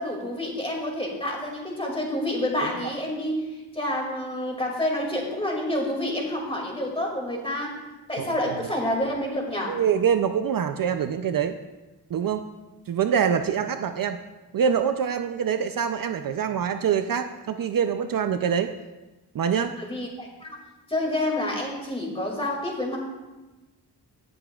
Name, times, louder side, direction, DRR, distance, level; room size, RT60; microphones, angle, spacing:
voice 1, 0.0-3.4 3.7-7.7 8.1-9.7 19.8-20.6 20.9-23.0, left 1 dB, 15° left, -1 dB, 2.2 m, -28 dB
voice 2, 8.2-8.6 9.7-11.6 12.1-12.4 12.9-14.2 14.5-18.7 19.3-19.8, right 7 dB, 55° right, 8 dB, 0.5 m, -25 dB
17.5 x 7.0 x 2.3 m, 1.1 s
wide cardioid pair, 115°, 40 cm